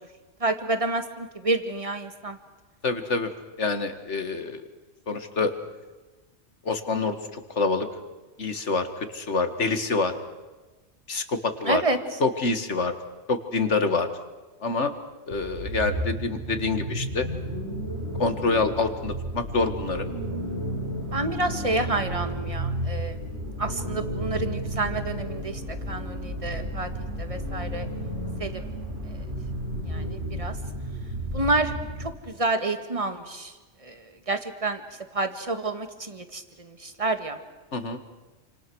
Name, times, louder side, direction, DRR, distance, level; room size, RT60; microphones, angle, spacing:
voice 1, 0.4-2.4 11.7-12.0 21.1-23.2 23.6-25.6 25.9-26.9 27.2-27.9 28.4-28.7 29.1-29.2 29.9-30.5 31.3-33.5 33.8-34.8 35.1-37.4, right 2 dB, 25° right, 8 dB, 1.9 m, -29 dB
voice 2, 2.8-3.3 3.6-4.6 5.1-5.5 6.6-7.9 8.4-10.1 11.1-11.8 12.2-12.9 13.3-14.1 14.6-14.9 15.3-17.3 18.2-20.1 37.7-38.0, left 3 dB, 65° left, 8 dB, 2.3 m, -26 dB
sound 1, 15.3-32.2, right 1 dB, 55° right, 6.8 m, -32 dB
29.0 x 26.5 x 6.3 m, 1.2 s
omnidirectional pair, 1.3 m